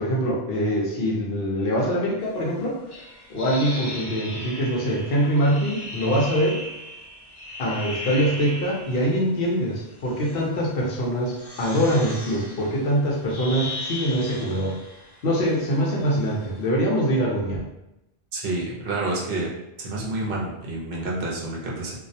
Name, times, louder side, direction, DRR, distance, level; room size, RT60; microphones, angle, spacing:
voice 1, 0.0-2.8 3.3-6.6 7.6-14.8 15.2-17.6, equal, 65° left, -3 dB, 0.8 m, -24 dB
sound 1, 2.9-9.1 9.9-10.5 11.2-16.6, left 1 dB, 40° left, 0.3 m, -37 dB
voice 2, 18.3-19.5 19.8-22.0, right 2 dB, 65° right, -4 dB, 0.7 m, -28 dB
2.3 x 2.0 x 2.6 m, 0.89 s
omnidirectional pair, 1.1 m